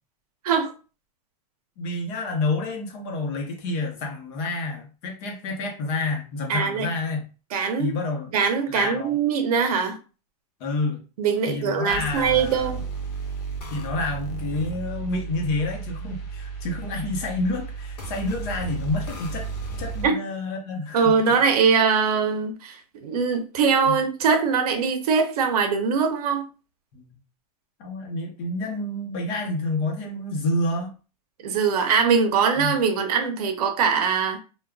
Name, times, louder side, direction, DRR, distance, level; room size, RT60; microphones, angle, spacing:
voice 1, 1.8-7.2 7.8-8.3 8.7-9.1 10.6-11.0 11.5-12.8 13.7-19.5 19.8-21.0 23.9-24.0 26.9-27.1 27.8-30.9 32.6-32.7, left 2 dB, 40° left, 0.8 m, -29 dB
voice 2, 6.5-6.9 7.5-7.9 8.3-10.0 11.2-12.8 20.0-20.1 20.9-26.4 31.4-34.4, right 6 dB, 70° right, 0.7 m, -22 dB
sound 1, 11.9-20.1, right 4 dB, 85° left, 1.1 m, -34 dB
3.5 x 2.3 x 2.3 m
supercardioid pair, 160°, 20 cm